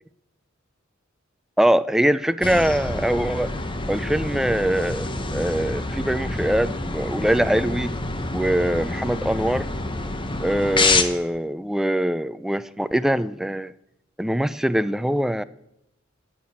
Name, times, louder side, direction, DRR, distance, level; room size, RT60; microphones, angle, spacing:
voice 1, 1.6-3.5 3.9-7.9 8.3-9.7 10.4-13.7 14.2-15.4, right 1 dB, ahead, 0.3 m, -23 dB
sound 1, 2.4-11.0, left 3 dB, 25° left, 0.9 m, -27 dB
11.5 x 5.8 x 8.7 m
head